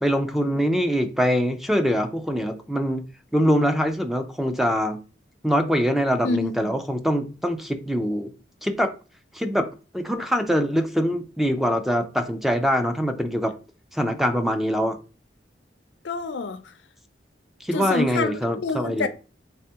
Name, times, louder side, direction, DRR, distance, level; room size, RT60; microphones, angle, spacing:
voice 1, 0.0-3.0 3.3-5.0 5.4-8.3 8.6-8.9 9.3-9.6 9.9-13.5 13.9-15.0 17.6-19.1, equal, ahead, 0.3 m, -23 dB
voice 2, 6.2-6.8 16.0-16.7 17.7-19.1, left 4 dB, 85° left, 0.5 m, -27 dB
3.4 x 3.3 x 2.8 m
head